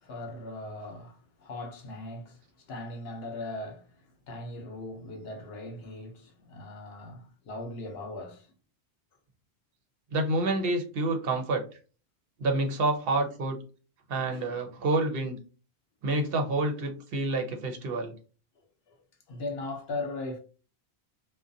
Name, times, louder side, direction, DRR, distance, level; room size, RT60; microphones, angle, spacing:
voice 1, 0.0-8.5 14.3-14.5 18.9-19.0 19.3-20.4, left 2 dB, 70° left, 0.9 m, -39 dB
voice 2, 10.1-11.6 12.4-13.6 14.1-15.4 16.0-18.2, right 2 dB, 65° right, 0.8 m, -28 dB
2.4 x 2.1 x 2.6 m
omnidirectional pair, 1.1 m